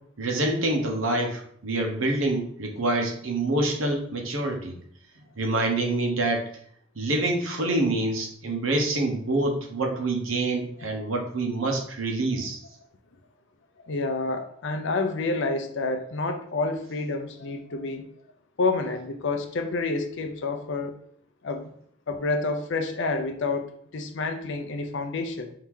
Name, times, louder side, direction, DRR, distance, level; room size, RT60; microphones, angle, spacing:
voice 1, 0.2-4.7 5.4-6.5 7.0-12.6, right 2 dB, 85° right, 2 dB, 0.9 m, -26 dB
voice 2, 13.8-18.1 18.6-21.0 21.4-21.7 22.1-25.5, left 3 dB, 65° left, 6 dB, 0.6 m, -29 dB
4.6 x 2.8 x 3.7 m, 0.64 s
head